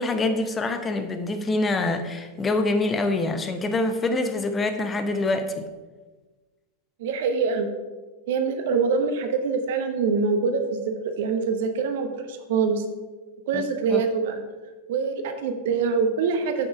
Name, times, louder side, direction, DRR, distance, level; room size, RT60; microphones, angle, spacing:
voice 1, 0.0-5.7 13.5-13.6 13.9-14.0, left 2 dB, 20° left, 7 dB, 0.7 m, -25 dB
voice 2, 7.0-7.7 8.3-12.9 13.5-14.4 14.9-16.7, right 5 dB, 55° right, 7 dB, 0.9 m, -24 dB
6.8 x 6.4 x 4.8 m, 1.3 s
figure-of-eight pair, 90°, 0 cm